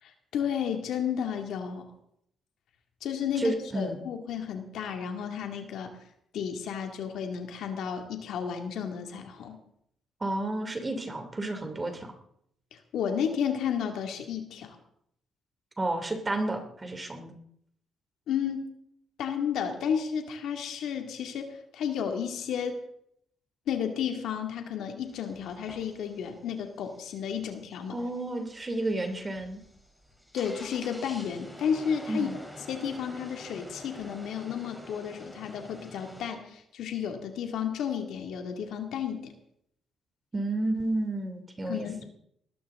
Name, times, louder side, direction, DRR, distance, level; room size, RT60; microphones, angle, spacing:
voice 1, 0.0-1.9 3.0-5.9 6.3-9.6 12.9-14.8 18.3-18.6 19.2-22.8 23.7-28.0 30.3-32.3 32.7-39.3 41.7-42.0, left 8 dB, 75° left, 4 dB, 2.3 m, -32 dB
voice 2, 3.4-4.0 10.2-12.1 15.8-17.4 27.9-29.6 32.1-32.4 40.3-42.0, right 2 dB, 25° right, 6 dB, 2.9 m, -31 dB
sound 1, 25.0-36.3, equal, ahead, 4.1 m, -48 dB
20.0 x 14.0 x 3.8 m, 0.72 s
cardioid pair, 90°, 0 cm